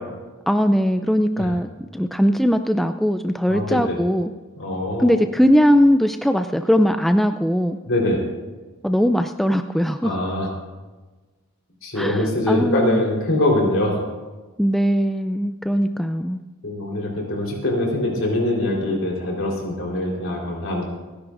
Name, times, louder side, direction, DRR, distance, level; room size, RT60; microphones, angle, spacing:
voice 1, 0.5-4.3 5.0-7.8 8.8-10.2 12.0-13.1 14.6-16.4, equal, ahead, 7 dB, 0.3 m, -20 dB
voice 2, 3.5-4.0 4.6-5.1 7.9-8.2 10.0-10.5 11.8-14.1 16.6-20.9, left 1 dB, 60° left, -1 dB, 3.9 m, -23 dB
29.0 x 10.5 x 2.6 m, 1.3 s
head